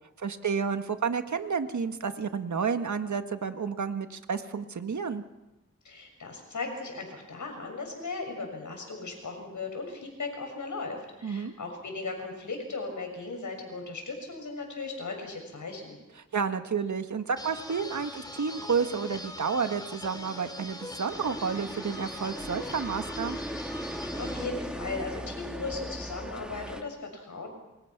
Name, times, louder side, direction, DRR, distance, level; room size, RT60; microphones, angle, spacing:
voice 1, 0.2-5.2 11.2-11.5 16.3-23.4, right 6 dB, 70° right, 8 dB, 1.7 m, -30 dB
voice 2, 5.8-16.0 24.2-27.5, left 3 dB, 75° left, 3 dB, 6.8 m, -37 dB
sound 1, 17.4-24.5, left 1 dB, 15° left, 3.3 m, -41 dB
sound 2, 21.1-26.8, equal, 5° right, 2.0 m, -38 dB
27.5 x 24.0 x 6.0 m, 0.97 s
wide cardioid pair, 90°, 30 cm